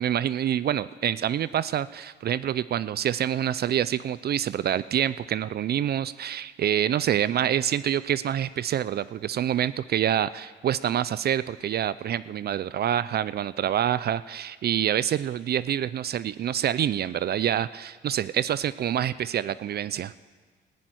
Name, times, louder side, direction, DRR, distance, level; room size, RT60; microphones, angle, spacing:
voice 1, 0.0-20.1, right 10 dB, 55° right, 16 dB, 0.4 m, -26 dB
14.0 x 10.5 x 9.3 m, 1.5 s
cardioid pair, 90°, 20 cm